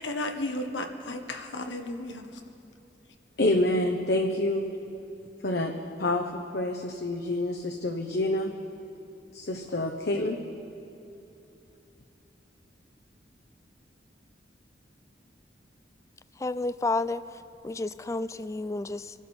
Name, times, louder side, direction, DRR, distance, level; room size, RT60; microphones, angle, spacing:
voice 1, 0.0-2.2, left 1 dB, 85° left, 4 dB, 1.3 m, -34 dB
voice 2, 3.4-4.7 5.4-5.7 6.0-6.3 6.5-8.5 9.3-10.4, left 1 dB, 60° left, 3 dB, 0.9 m, -27 dB
voice 3, 16.4-17.2 17.6-19.1, left 2 dB, 15° left, 15 dB, 0.3 m, -30 dB
25.5 x 12.0 x 4.4 m, 2.9 s
head